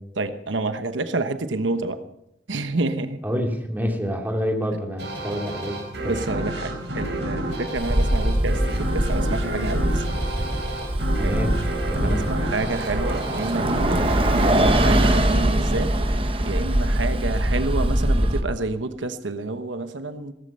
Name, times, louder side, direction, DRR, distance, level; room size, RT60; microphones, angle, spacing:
voice 1, 0.2-2.0 2.5-3.2 6.0-10.0 11.2-11.3 12.0-14.0 14.4-15.9 16.4-20.3, right 2 dB, 90° right, 9 dB, 1.1 m, -28 dB
voice 2, 3.2-5.8 6.0-6.2 11.2-11.6 11.9-12.2, equal, 10° right, 1 dB, 2.6 m, -27 dB
sound 1, 5.0-16.2, right 1 dB, 70° right, 4.4 m, -30 dB
Bus, 7.7-18.4, right 1 dB, 30° right, 1.1 m, -22 dB
16.5 x 14.5 x 5.5 m, 0.79 s
head